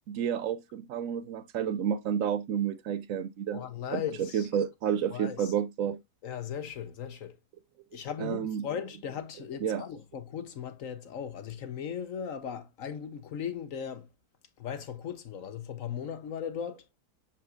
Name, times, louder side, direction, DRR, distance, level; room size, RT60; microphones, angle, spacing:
voice 1, 0.1-3.6 3.9-6.0 8.2-8.7 9.6-9.8, right 8 dB, 65° right, 0.9 m, -30 dB
voice 2, 3.5-4.5 5.1-5.5 6.2-7.3 7.9-14.1 14.6-16.8, left 8 dB, 60° left, 1.0 m, -37 dB
6.8 x 5.7 x 2.4 m
omnidirectional pair, 1.8 m